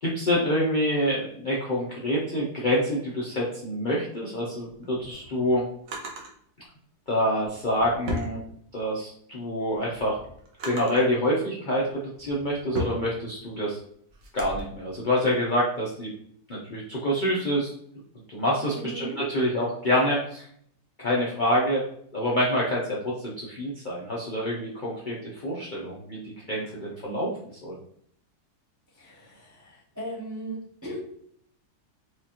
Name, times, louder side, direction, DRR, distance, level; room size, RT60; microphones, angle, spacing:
voice 1, 0.0-5.7 7.1-8.4 8.7-10.2 10.6-13.8 14.3-16.1 16.5-17.7 18.3-20.5 21.0-21.8 22.1-26.2 26.5-27.3 27.6-27.8, equal, 50° left, -5 dB, 0.5 m, -26 dB
Drawer open or close, 4.7-6.3 7.4-9.0 9.4-11.1 11.8-14.6, equal, 60° right, 1.1 m, -37 dB
voice 2, 18.7-19.2 27.1-27.4 28.9-31.0, right 1 dB, 25° right, -5 dB, 0.4 m, -38 dB
4.8 x 2.4 x 2.8 m, 0.66 s
omnidirectional pair, 1.7 m